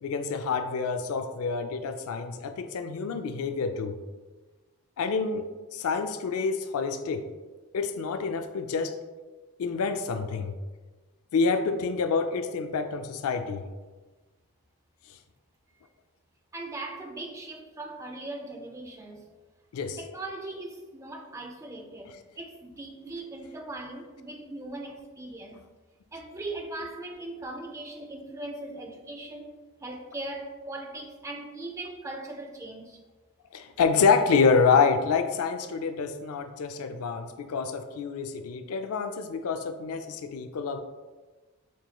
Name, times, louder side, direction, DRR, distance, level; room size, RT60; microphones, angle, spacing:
voice 1, 0.0-4.0 5.0-7.2 7.7-9.0 9.6-10.5 11.3-13.6 19.7-20.0 33.5-40.8, left 5 dB, 75° left, 8 dB, 0.4 m, -27 dB
voice 2, 16.5-19.4 20.0-25.6 26.1-29.5 29.8-33.0, right 2 dB, 15° right, 2 dB, 0.4 m, -39 dB
7.1 x 3.0 x 2.3 m, 1.3 s
head